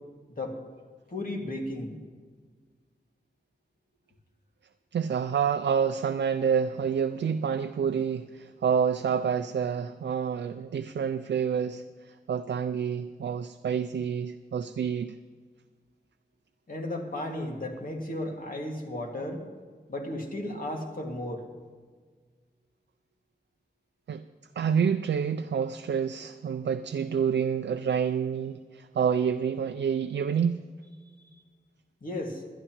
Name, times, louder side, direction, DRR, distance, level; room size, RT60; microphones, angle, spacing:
voice 1, 1.1-2.0 16.7-19.4 19.9-21.4 32.0-32.4, left 1 dB, 55° left, 1 dB, 2.1 m, -34 dB
voice 2, 4.9-11.8 12.3-15.1 24.1-24.2 24.6-30.6, right 7 dB, 90° right, 8 dB, 0.4 m, -28 dB
21.0 x 11.0 x 3.0 m, 1.6 s
wide cardioid pair, 70°, 18 cm